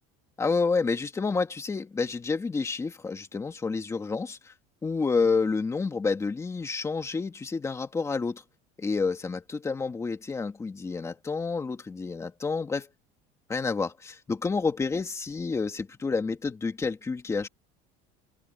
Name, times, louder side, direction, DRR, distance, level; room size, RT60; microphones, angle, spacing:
voice 1, 0.4-4.5 4.8-8.4 8.8-12.9 13.5-17.5, left 4 dB, 15° left, 2.1 m, -29 dB
cardioid pair, 160°, 21 cm